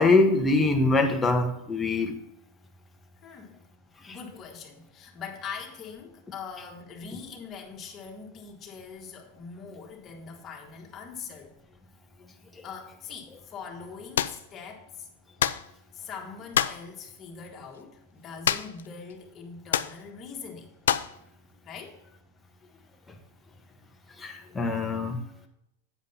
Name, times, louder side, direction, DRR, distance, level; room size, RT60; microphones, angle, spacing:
voice 1, 0.0-2.1 4.0-4.2 24.2-25.2, left 3 dB, 10° left, 3 dB, 1.2 m, -23 dB
voice 2, 3.2-3.6 4.1-11.6 12.6-15.1 15.9-20.7 21.7-22.0, left 6 dB, 30° left, 0 dB, 1.9 m, -42 dB
sound 1, 14.2-14.4 15.4-15.7 16.5-16.8 18.4-18.9 19.1-19.2 19.7-20.0 20.9-21.2, left 10 dB, 80° left, 0.4 m, -26 dB
8.5 x 5.1 x 5.6 m, 0.80 s
hypercardioid pair, 115°, 0 cm